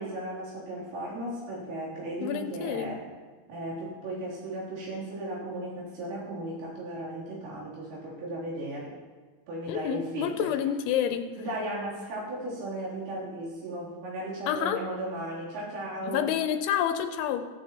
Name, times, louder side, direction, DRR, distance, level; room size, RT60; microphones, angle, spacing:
voice 1, 0.0-3.0 3.5-8.9 9.5-10.5 11.4-16.2, right 1 dB, 90° right, -7 dB, 6.3 m, -36 dB
voice 2, 2.2-2.9 9.7-11.3 14.5-14.8 16.1-17.5, left 9 dB, 85° left, 7 dB, 3.1 m, -28 dB
15.5 x 13.5 x 3.1 m, 1.4 s
omnidirectional pair, 5.5 m